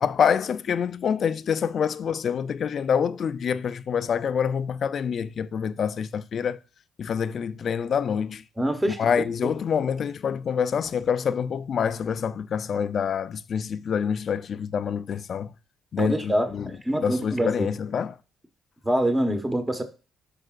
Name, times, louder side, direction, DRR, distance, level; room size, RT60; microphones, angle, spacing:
voice 1, 0.0-6.6 7.0-8.4 9.0-15.5 15.9-16.6 17.0-18.1, left 7 dB, 55° left, 0.5 m, -26 dB
voice 2, 8.5-9.5 16.0-17.7 18.8-19.8, right 1 dB, 10° right, 1.3 m, -25 dB
13.0 x 4.8 x 2.5 m
cardioid pair, 90°, 0 cm